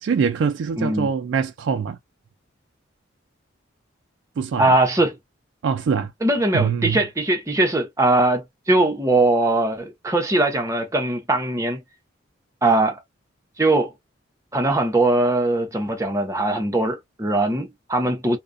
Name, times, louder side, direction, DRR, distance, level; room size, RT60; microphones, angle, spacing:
voice 1, 0.0-2.0 4.4-4.8 5.6-6.1 6.5-7.0, right 6 dB, 70° right, 0.3 m, -23 dB
voice 2, 0.8-1.1 4.6-5.2 6.2-11.8 12.6-13.0 13.6-13.9 14.5-18.4, right 2 dB, 15° right, 0.6 m, -20 dB
2.4 x 2.1 x 2.4 m
head